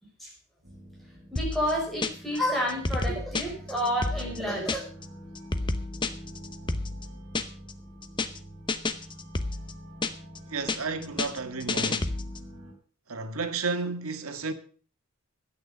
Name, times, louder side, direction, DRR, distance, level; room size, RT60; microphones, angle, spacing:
sound 1, 0.6-12.7, equal, 55° right, 5.6 m, -46 dB
voice 1, 1.3-4.8, equal, ahead, 5.2 m, -29 dB
sound 2, 1.4-2.4 2.7-5.1 5.4-7.7 8.0-8.4 8.7-10.4 10.7-12.5, left 2 dB, 20° left, 0.8 m, -30 dB
voice 2, 10.5-12.1 13.1-14.5, right 4 dB, 90° right, 1.7 m, -32 dB
12.5 x 9.0 x 6.6 m
head